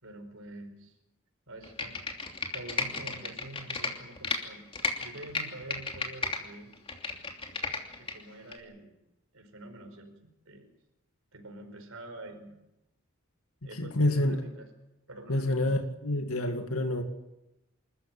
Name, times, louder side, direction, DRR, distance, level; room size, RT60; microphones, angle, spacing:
voice 1, 0.0-1.0 1.5-1.9 2.5-4.6 5.0-6.7 7.9-9.0 9.3-10.1 10.4-10.7 11.3-12.6 13.6-14.7 15.1-15.7, right 2 dB, 65° right, 5 dB, 5.0 m, -46 dB
Computer keyboard, 1.6-4.4 4.7-6.4 6.7-8.1 8.5-8.6, left 4 dB, 25° left, 2.9 m, -33 dB
voice 2, 13.8-14.4 15.3-17.0, left 1 dB, 80° left, 6 dB, 2.3 m, -27 dB
26.5 x 14.0 x 9.1 m, 0.93 s
head